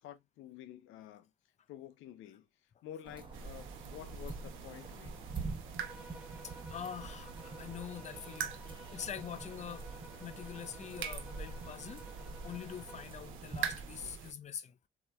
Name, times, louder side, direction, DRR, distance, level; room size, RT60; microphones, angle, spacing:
voice 1, 0.0-1.3 1.7-2.5 2.8-5.2, left 11 dB, 85° left, 0.5 m, -50 dB
sound 1, 3.0-14.2, right 3 dB, 25° right, 1.1 m, -46 dB
sound 2, 3.3-14.3, right 8 dB, 85° right, 0.7 m, -45 dB
sound 3, 5.8-13.2, equal, 5° right, 0.9 m, -55 dB
voice 2, 6.4-9.8 10.2-12.1 12.4-14.9, left 8 dB, 35° left, 0.5 m, -45 dB
4.1 x 2.8 x 2.3 m
cardioid pair, 90°, 20 cm